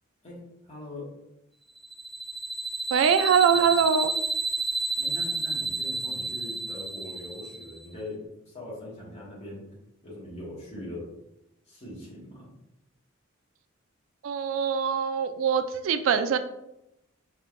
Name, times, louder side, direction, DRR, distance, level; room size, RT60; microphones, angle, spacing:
voice 1, 0.2-1.1 3.5-3.6 5.0-8.2 8.5-9.7 10.0-11.1 11.7-12.5, left 1 dB, 35° left, -7 dB, 1.5 m, -41 dB
sound 1, 1.8-7.8, right 3 dB, ahead, 0.5 m, -30 dB
voice 2, 2.9-4.1 14.2-16.4, right 7 dB, 70° right, 9 dB, 0.3 m, -23 dB
4.1 x 3.6 x 2.5 m, 0.86 s
head